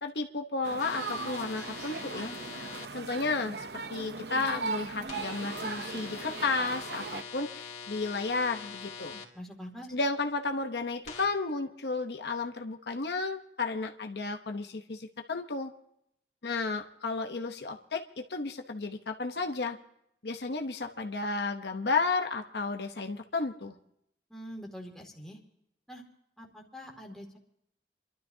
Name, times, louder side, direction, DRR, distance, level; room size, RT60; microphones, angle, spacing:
voice 1, 0.0-2.3 2.9-9.2 9.9-15.7 16.4-19.8 20.2-23.7, left 3 dB, 70° left, 4 dB, 0.9 m, -33 dB
sound 1, 0.6-7.2, right 4 dB, 70° right, 0.7 m, -38 dB
sound 2, 0.8-2.9 5.1-9.2 11.1-11.3, left 6 dB, 40° left, 2.3 m, -43 dB
voice 2, 9.3-9.9 24.3-25.4 25.9-26.0 26.4-27.4, equal, 5° left, -1 dB, 2.3 m, -44 dB
29.0 x 12.5 x 2.7 m, 0.77 s
head